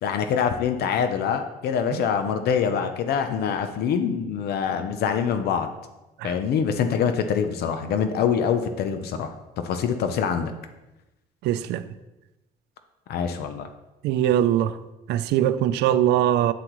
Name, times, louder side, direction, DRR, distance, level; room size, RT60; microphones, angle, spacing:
voice 1, 0.0-5.7 6.2-9.3 9.6-10.5 13.1-13.7, left 7 dB, 70° left, 0.7 m, -25 dB
voice 2, 11.4-11.8 14.0-14.8 15.1-16.5, right 11 dB, 80° right, 0.5 m, -22 dB
8.5 x 7.8 x 3.1 m
cardioid pair, 110°, 17 cm